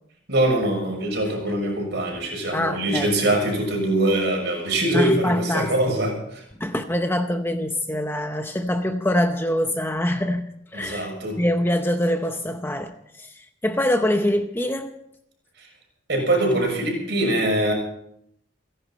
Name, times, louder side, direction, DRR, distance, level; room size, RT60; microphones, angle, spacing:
voice 1, 0.3-6.4 10.7-11.4 15.6-15.7 16.1-17.7, right 1 dB, 55° right, 1 dB, 6.5 m, -23 dB
voice 2, 2.5-3.1 4.9-5.7 6.6-11.1 11.4-14.9, left 1 dB, 10° left, 6 dB, 0.8 m, -24 dB
29.0 x 11.0 x 4.2 m, 0.73 s
head